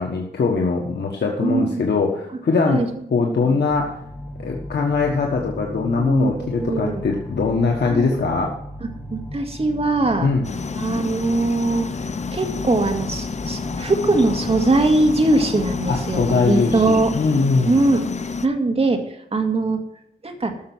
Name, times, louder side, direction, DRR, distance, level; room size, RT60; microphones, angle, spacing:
voice 1, 0.0-2.8 3.1-4.0 4.4-8.5 10.2-10.5 15.9-17.8, left 4 dB, 70° left, 0 dB, 1.5 m, -21 dB
voice 2, 1.4-1.8 2.6-2.9 3.5-3.6 6.0-7.0 7.9-8.2 9.1-10.3 10.8-11.9 12.3-17.1 17.7-18.0 18.4-19.0 19.3-19.8 20.2-20.5, right 2 dB, 35° right, 4 dB, 1.9 m, -21 dB
sound 1, 3.7-17.3, equal, 10° left, 1.6 m, -36 dB
sound 2, 10.4-18.5, left 5 dB, 40° left, 0.7 m, -29 dB
13.0 x 6.8 x 6.2 m, 0.77 s
wide cardioid pair, 105°, 18 cm